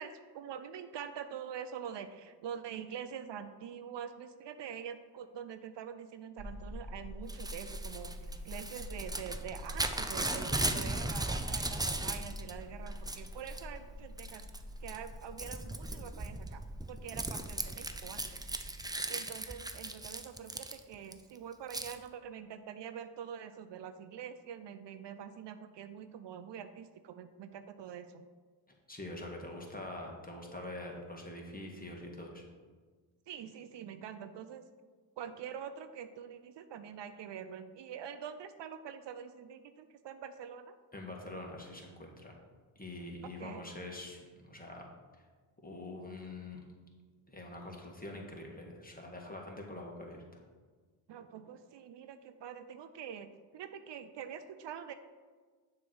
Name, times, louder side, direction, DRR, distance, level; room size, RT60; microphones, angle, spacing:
voice 1, 0.0-14.4 14.8-16.6 16.9-18.4 19.1-28.3 33.3-34.6 35.2-40.7 43.4-43.6 51.1-54.9, right 8 dB, 65° right, 10 dB, 0.5 m, -45 dB
sound 1, 6.4-18.9, equal, 35° left, 1.9 m, -46 dB
Crumpling crinkling / Tearing, 7.3-12.5 12.9-13.6 14.2-14.6 14.9-21.1 21.7-22.0, right 2 dB, 10° right, 0.5 m, -37 dB
voice 2, 28.9-32.4 40.9-42.3 42.7-44.8 45.6-46.6 47.3-50.2, left 1 dB, 20° left, 0 dB, 1.6 m, -44 dB
7.0 x 3.3 x 6.1 m, 1.5 s
supercardioid pair, 50°, 47 cm